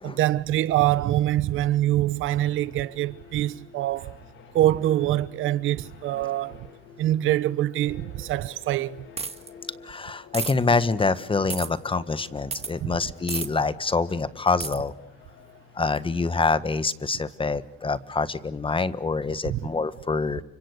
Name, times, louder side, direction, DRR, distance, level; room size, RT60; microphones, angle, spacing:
voice 1, 0.0-4.2 4.5-6.7 7.0-9.0 12.8-13.0 19.4-19.6, right 14 dB, 85° right, 1.0 m, -24 dB
sound 1, 2.4-16.3, left 6 dB, 70° left, 2.6 m, -50 dB
sound 2, 9.2-9.5 10.3-10.5 11.5-11.7 12.5-12.7 13.3-13.5 14.6-14.8, right 4 dB, 30° right, 2.0 m, -31 dB
voice 2, 9.8-14.9 15.8-20.4, left 4 dB, 25° left, 1.5 m, -26 dB
30.0 x 25.5 x 6.7 m
cardioid pair, 90°, 20 cm